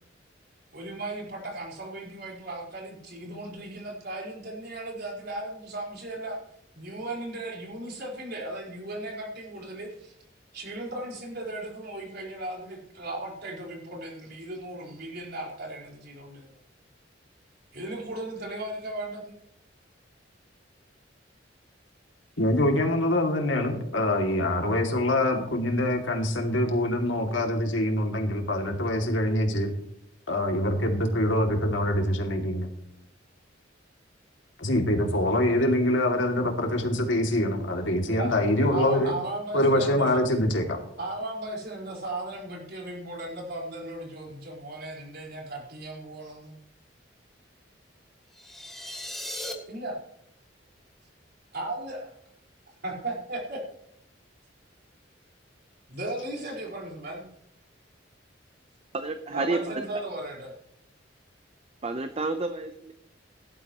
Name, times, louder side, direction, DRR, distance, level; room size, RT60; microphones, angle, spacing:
voice 1, 0.7-6.4 6.7-10.1 10.5-16.6 17.7-19.3 38.1-38.3 38.6-40.2 41.0-46.6 49.7-50.0 51.5-52.1 52.8-53.6 55.9-57.2 59.3-60.5, right 2 dB, 60° right, -2 dB, 4.8 m, -36 dB
voice 2, 22.4-29.7 30.3-32.7 34.6-39.1 39.5-40.8, left 1 dB, 80° left, 2 dB, 2.6 m, -24 dB
sound 1, 48.3-49.5, left 1 dB, ahead, 2.0 m, -37 dB
voice 3, 58.9-59.8 61.8-62.9, right 3 dB, 35° right, 7 dB, 0.8 m, -30 dB
17.5 x 12.5 x 3.1 m, 0.75 s
head